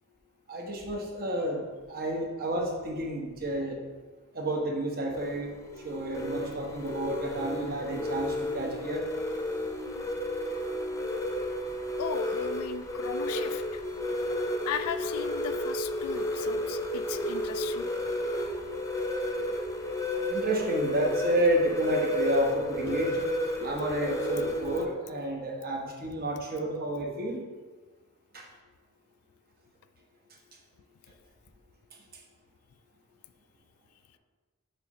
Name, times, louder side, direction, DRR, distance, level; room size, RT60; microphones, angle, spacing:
voice 1, 0.5-3.8 4.3-9.0 20.3-27.4 28.3-28.4, right 1 dB, 40° right, 0 dB, 1.0 m, -30 dB
sound 1, 5.1-24.8, left 1 dB, 15° left, 0.4 m, -32 dB
voice 2, 12.0-13.8 14.7-17.9, left 7 dB, 75° left, 12 dB, 0.4 m, -37 dB
6.7 x 3.0 x 5.9 m, 1.3 s
head